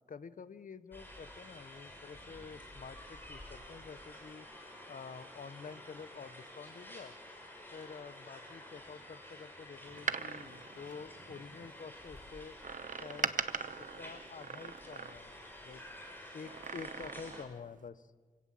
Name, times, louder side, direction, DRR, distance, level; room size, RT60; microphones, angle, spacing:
voice 1, 0.1-4.5 4.9-7.1 7.7-12.6 13.0-13.4 13.8-15.8 16.3-18.1, left 5 dB, 65° left, 14 dB, 0.9 m, -49 dB
sound 1, 0.9-17.5, left 1 dB, 15° left, 5.6 m, -51 dB
Door, 9.9-11.7 12.6-15.5 16.4-17.6 17.9-18.0, right 6 dB, 65° right, 0.9 m, -40 dB
28.0 x 17.0 x 7.6 m, 1.5 s
wide cardioid pair, 130°, 15 cm